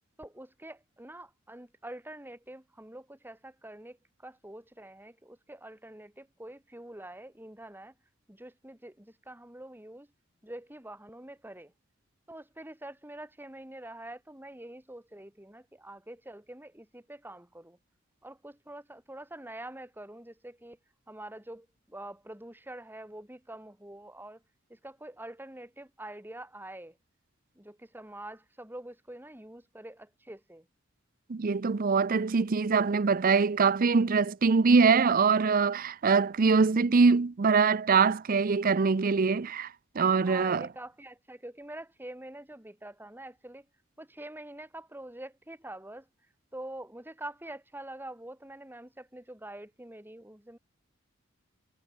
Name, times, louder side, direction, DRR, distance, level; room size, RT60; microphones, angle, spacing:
voice 1, 0.2-7.9 8.3-10.1 10.4-11.7 12.3-17.8 18.2-20.8 21.1-24.4 24.7-27.0 27.6-30.7 40.1-43.7 44.0-50.6, right 1 dB, 10° right, 3.3 m, -45 dB
voice 2, 31.3-40.7, right 5 dB, 45° right, 0.5 m, -23 dB
head